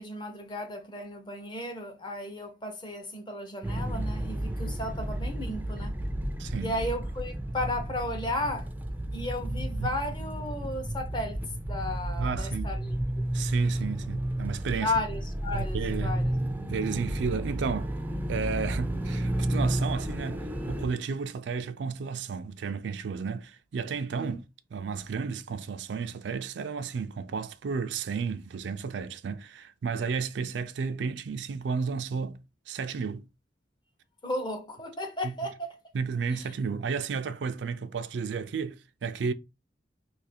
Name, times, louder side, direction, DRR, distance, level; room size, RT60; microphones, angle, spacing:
voice 1, 0.0-5.9 6.6-8.7 9.1-11.4 11.7-13.0 14.8-16.3 24.1-24.4 34.2-35.8 36.3-36.5, left 1 dB, 25° left, 0.7 m, -34 dB
sound 1, 3.6-20.9, right 1 dB, 10° right, 0.4 m, -32 dB
voice 2, 6.4-6.7 9.8-9.9 12.2-12.7 13.3-14.9 15.5-16.2 16.6-17.9 18.3-24.4 24.7-32.4 32.7-33.3 35.2-35.3 35.9-39.3, right 5 dB, 75° right, 0.4 m, -32 dB
2.8 x 2.5 x 4.2 m
head